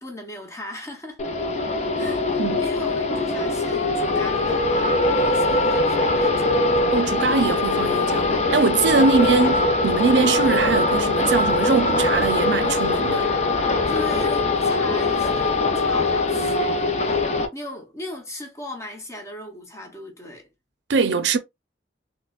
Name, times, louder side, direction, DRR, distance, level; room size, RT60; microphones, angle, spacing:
voice 1, 0.0-1.2 2.0-6.6 8.6-9.1 13.9-17.2 17.5-20.5, left 1 dB, 15° left, 0.8 m, -37 dB
sound 1, 1.2-17.4, left 2 dB, 40° left, 0.5 m, -22 dB
voice 2, 6.9-13.3 20.9-21.4, right 4 dB, 80° right, 0.5 m, -22 dB
4.2 x 2.1 x 2.4 m
head